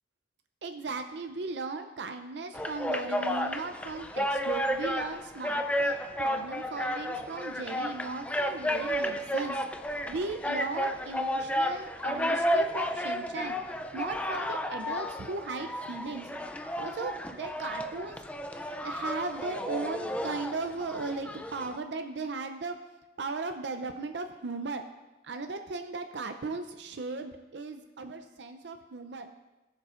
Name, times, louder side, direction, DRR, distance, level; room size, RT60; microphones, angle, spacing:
voice 1, 0.6-9.6 10.1-13.6 13.9-16.3 16.8-18.2 18.8-22.8 23.2-24.8 25.2-29.3, right 3 dB, 70° right, 6 dB, 0.5 m, -37 dB
sound 1, 2.5-21.8, equal, 5° left, 0.3 m, -32 dB
20.0 x 7.2 x 2.5 m, 1.1 s
head